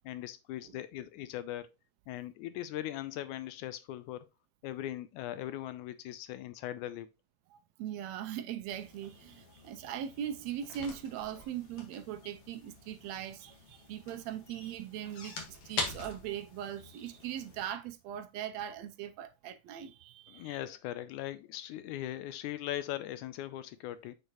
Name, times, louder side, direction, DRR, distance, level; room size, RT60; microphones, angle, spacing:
voice 1, 0.1-1.7 2.1-4.3 4.6-7.1 20.3-24.1, left 13 dB, 80° left, 1.9 m, -40 dB
voice 2, 7.5-20.6, right 10 dB, 85° right, 1.5 m, -40 dB
sound 1, 8.7-17.6, left 3 dB, 50° left, 2.2 m, -44 dB
6.8 x 6.6 x 3.0 m
omnidirectional pair, 3.8 m